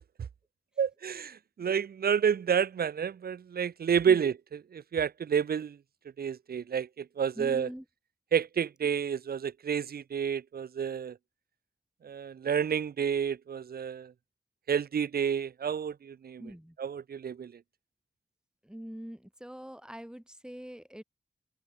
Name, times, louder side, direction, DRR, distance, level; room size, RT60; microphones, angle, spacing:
voice 1, 0.8-5.8 6.2-7.7 8.3-11.1 12.0-14.1 14.7-16.5 16.8-17.5, right 7 dB, 65° right, 0.6 m, -30 dB
voice 2, 7.4-7.8 16.4-16.8 18.6-21.0, equal, 5° right, 7.6 m, -43 dB
cardioid pair, 40°, 17 cm